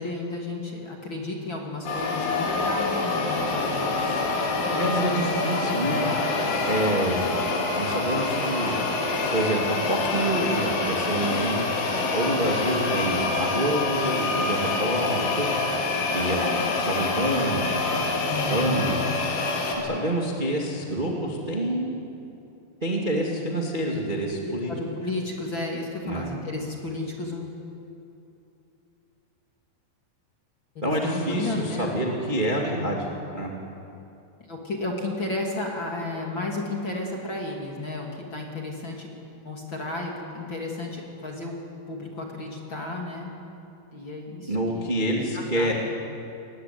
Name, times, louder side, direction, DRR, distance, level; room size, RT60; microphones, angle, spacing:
voice 1, 0.0-5.3 18.3-19.0 24.4-27.5 30.7-31.9 34.5-39.1 39.4-41.5 41.9-43.4 43.9-44.9 45.3-45.7, left 2 dB, 35° left, -1 dB, 2.5 m, -33 dB
sound 1, 1.9-19.8, left 3 dB, 85° left, 5.5 m, -26 dB
voice 2, 4.8-6.1 6.6-7.4 7.8-8.8 9.3-11.7 12.1-15.5 16.1-19.0 19.8-21.9 22.8-24.7 26.0-26.3 30.8-33.1 33.3-33.5 44.5-45.7, right 1 dB, 25° right, -1 dB, 1.0 m, -27 dB
21.5 x 20.5 x 9.5 m, 2.7 s
omnidirectional pair, 5.4 m